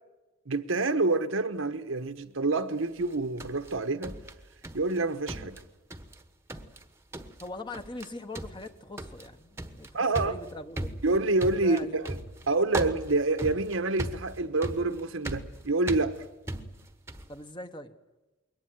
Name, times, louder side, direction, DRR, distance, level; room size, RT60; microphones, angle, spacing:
voice 1, 0.5-4.2 4.7-5.6 9.9-10.3 11.0-12.1 12.5-16.2, right 3 dB, 70° right, 1.2 m, -27 dB
sound 1, 3.0-5.0 5.3-6.2 6.5-6.8 7.1-7.5 7.7-8.1 8.3-17.3, right 1 dB, 15° right, 1.1 m, -38 dB
voice 2, 7.4-10.9 11.6-12.0 17.3-17.9, left 2 dB, 25° left, 1.2 m, -41 dB
22.0 x 18.5 x 9.2 m
head